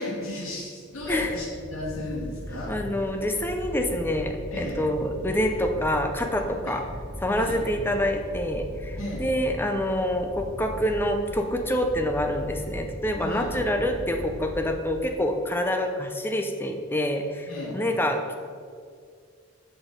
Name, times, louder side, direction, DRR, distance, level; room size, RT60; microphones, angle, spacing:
voice 1, 0.0-2.7 4.5-4.8 6.6-6.7 7.3-7.6 9.0-9.3 13.2-13.5 17.5-17.8, left 1 dB, 75° left, -7 dB, 1.7 m, -34 dB
sound 1, 0.9-15.2, equal, 40° left, 1.1 m, -39 dB
voice 2, 2.7-6.8 7.2-18.3, left 1 dB, 10° left, 4 dB, 0.5 m, -26 dB
6.1 x 6.1 x 5.1 m, 2.2 s
head